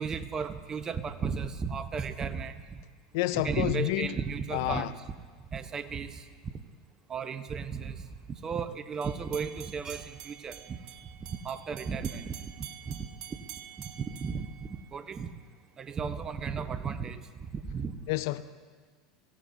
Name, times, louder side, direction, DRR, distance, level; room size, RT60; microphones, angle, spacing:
voice 1, 0.0-2.8 3.3-4.9 5.5-6.5 7.1-8.0 8.3-10.8 11.2-13.4 13.8-15.3 15.8-17.9, right 6 dB, 30° right, 0.9 m, -35 dB
voice 2, 3.1-4.1 4.5-4.9 18.1-18.4, left 17 dB, 65° left, 0.5 m, -29 dB
sound 1, 9.0-15.2, right 11 dB, 55° right, 0.7 m, -48 dB
23.5 x 16.0 x 2.7 m
hypercardioid pair, 85°, 2 cm